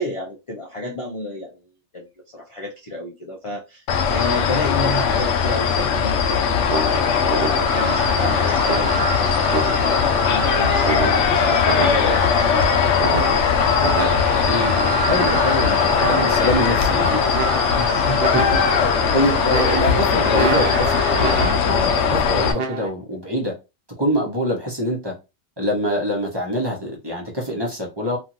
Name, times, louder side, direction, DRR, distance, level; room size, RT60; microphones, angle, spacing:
voice 1, 0.0-1.5 1.9-2.1 2.3-3.8 4.1-13.5 17.8-18.2 18.5-18.8, left 1 dB, 40° left, 0.5 m, -31 dB
sound 1, 3.9-22.5, left 6 dB, 85° left, 0.9 m, -19 dB
sound 2, 6.7-8.0 8.7-10.1 10.8-12.4 13.0-14.6 15.2-16.6 17.3-17.9 18.2-18.9 19.5-21.8 22.5-22.9, right 4 dB, 60° right, 0.8 m, -28 dB
sound 3, 7.6-21.5, right 3 dB, 80° right, 1.1 m, -29 dB
voice 2, 14.4-17.3 18.3-23.5 24.0-25.1 25.6-28.2, equal, 25° right, 0.9 m, -25 dB
2.9 x 2.6 x 2.5 m
omnidirectional pair, 1.2 m